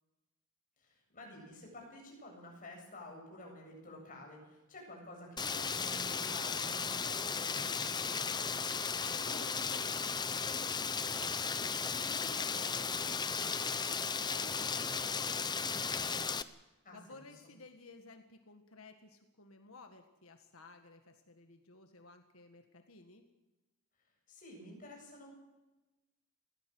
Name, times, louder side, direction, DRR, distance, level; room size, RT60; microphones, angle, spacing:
voice 1, 0.8-8.3 16.8-17.3 24.3-25.3, left 1 dB, 35° left, 0 dB, 8.0 m, -51 dB
Rain, 5.4-16.4, left 5 dB, 20° left, 0.7 m, -35 dB
voice 2, 8.7-23.3, left 3 dB, 70° left, 6 dB, 1.8 m, -56 dB
21.5 x 17.0 x 7.9 m, 1.1 s
head